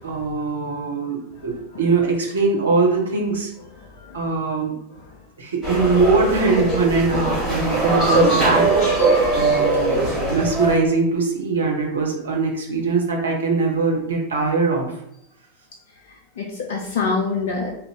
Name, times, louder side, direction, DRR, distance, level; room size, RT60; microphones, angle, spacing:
voice 1, 0.0-3.5 4.1-4.8 5.4-14.9, right 4 dB, 70° right, 0 dB, 0.9 m, -22 dB
voice 2, 3.8-4.3 16.1-17.7, left 4 dB, 55° left, 0 dB, 0.5 m, -26 dB
sound 1, 5.6-10.8, right 2 dB, 25° left, 1.3 m, -20 dB
2.9 x 2.5 x 3.5 m, 0.75 s
figure-of-eight pair, 90°, 0 cm